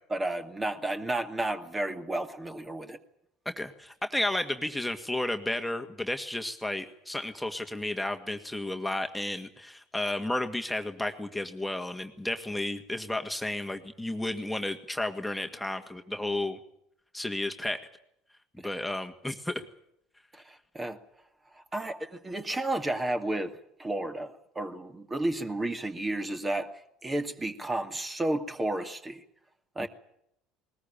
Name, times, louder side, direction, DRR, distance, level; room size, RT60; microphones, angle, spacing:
voice 1, 0.1-3.0 18.6-18.7 20.3-21.0 21.5-23.5 23.8-29.2 29.8-29.9, right 1 dB, 20° right, 8 dB, 2.3 m, -32 dB
voice 2, 3.5-16.6 17.1-17.8 18.6-19.6 29.8-29.9, left 1 dB, 5° left, 5 dB, 2.0 m, -32 dB
20.5 x 20.5 x 8.8 m, 0.76 s
hypercardioid pair, 65°, 0 cm